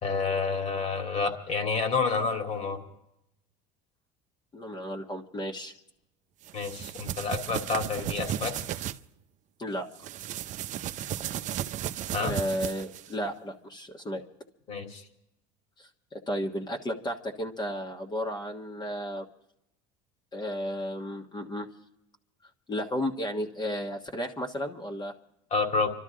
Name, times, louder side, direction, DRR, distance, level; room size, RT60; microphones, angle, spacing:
voice 1, 0.0-2.8 6.5-8.5 12.1-12.4 14.7-15.0 25.5-25.9, left 4 dB, 40° left, 4 dB, 2.8 m, -29 dB
voice 2, 4.5-5.7 9.6-9.9 12.2-14.2 15.8-19.3 20.3-21.7 22.7-25.1, equal, 25° left, 2 dB, 1.4 m, -33 dB
sound 1, 6.5-9.0 10.0-13.1, right 11 dB, 45° right, 0.7 m, -34 dB
28.0 x 13.0 x 3.8 m, 0.84 s
supercardioid pair, 110°, 17 cm